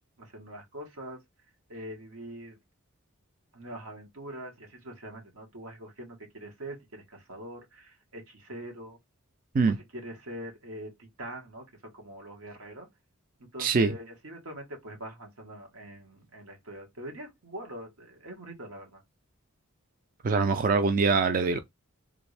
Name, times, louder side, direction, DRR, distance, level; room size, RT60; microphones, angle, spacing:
voice 1, 0.2-1.2 1.7-2.6 3.5-9.0 9.7-12.9 13.4-19.0, right 1 dB, 85° right, 1.5 m, -43 dB
voice 2, 13.6-13.9 20.2-21.6, right 4 dB, 40° right, 0.4 m, -23 dB
3.5 x 2.5 x 3.2 m
head